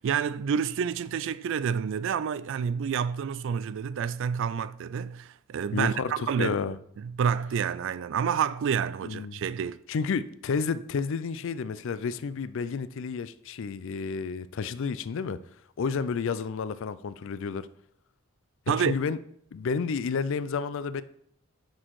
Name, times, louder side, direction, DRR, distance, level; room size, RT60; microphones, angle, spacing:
voice 1, 0.0-6.5 7.0-9.8 18.7-19.0, right 7 dB, 60° right, 0.3 m, -29 dB
voice 2, 5.7-6.8 9.0-9.4 9.9-15.4 15.8-17.7 18.7-19.2 19.5-21.0, left 5 dB, 65° left, 0.4 m, -31 dB
6.3 x 6.2 x 4.7 m
head